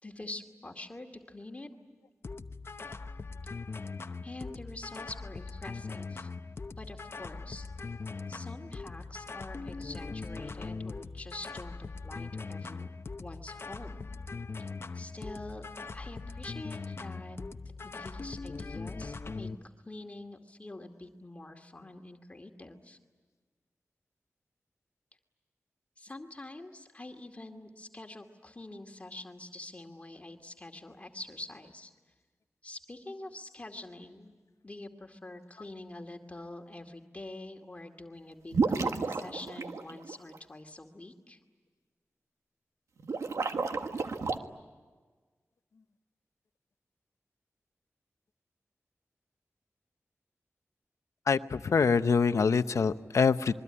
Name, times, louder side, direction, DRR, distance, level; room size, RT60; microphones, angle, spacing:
voice 1, 0.0-2.0 3.4-3.7 4.2-6.3 6.8-7.7 8.3-12.9 13.2-14.1 14.6-14.7 14.9-15.6 15.9-17.4 17.8-23.0 26.0-31.9 32.6-34.3 34.6-41.4, left 2 dB, 25° left, 4 dB, 2.3 m, -46 dB
sound 1, 2.2-19.6, left 4 dB, 55° left, 0.9 m, -41 dB
sound 2, 38.5-40.4 43.0-44.4, right 4 dB, 90° right, 1.5 m, -31 dB
voice 2, 51.3-53.5, left 5 dB, 85° left, 11 dB, 0.8 m, -25 dB
26.5 x 22.5 x 9.9 m, 1.4 s
wide cardioid pair, 80°, 5 cm